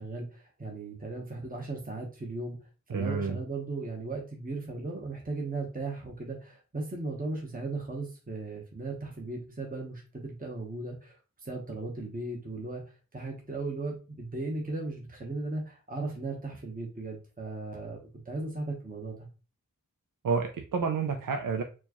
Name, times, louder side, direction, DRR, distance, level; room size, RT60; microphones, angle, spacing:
voice 1, 0.0-2.6 2.9-12.8 13.1-19.2, right 2 dB, 25° right, 0 dB, 1.0 m, -37 dB
voice 2, 2.9-3.4 20.2-21.6, right 5 dB, 75° right, 4 dB, 0.5 m, -29 dB
4.3 x 2.3 x 2.9 m, 0.32 s
wide cardioid pair, 45°, 33 cm